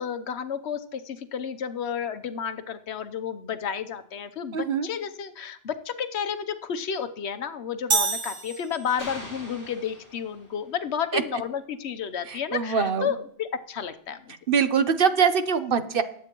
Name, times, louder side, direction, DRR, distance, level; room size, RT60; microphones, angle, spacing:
voice 1, 0.0-14.4, left 7 dB, 80° left, 10 dB, 1.1 m, -31 dB
voice 2, 4.5-4.9 11.1-11.2 12.3-13.1 14.5-16.0, right 6 dB, 60° right, 10 dB, 1.0 m, -23 dB
sound 1, 7.9-9.3, right 5 dB, 90° right, 1.4 m, -27 dB
sound 2, 9.0-10.7, left 1 dB, 15° left, 2.2 m, -43 dB
20.0 x 8.3 x 3.0 m, 0.66 s
omnidirectional pair, 1.1 m